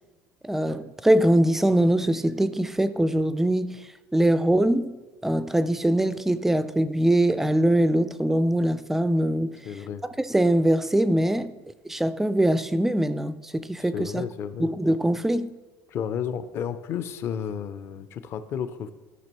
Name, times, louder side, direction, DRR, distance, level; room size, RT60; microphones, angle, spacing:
voice 1, 0.4-3.8 4.1-5.0 5.2-9.6 10.2-11.6 11.8-14.3 14.6-15.5, right 1 dB, 5° right, 0.3 m, -22 dB
voice 2, 9.6-10.0 13.8-14.7 15.9-18.9, left 8 dB, 45° left, 0.5 m, -32 dB
13.5 x 6.0 x 3.0 m
cardioid pair, 140°, 6 cm